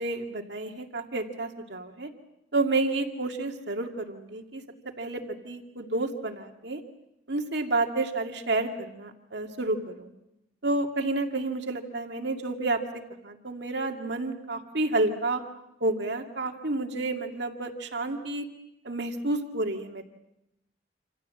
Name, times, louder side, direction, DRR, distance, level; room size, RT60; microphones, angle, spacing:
voice 1, 0.0-2.1 2.5-4.6 5.0-6.8 7.3-10.1 10.6-15.4 15.8-18.4 18.8-20.0, right 2 dB, 60° right, 3 dB, 2.2 m, -30 dB
27.5 x 27.5 x 7.6 m, 0.85 s
head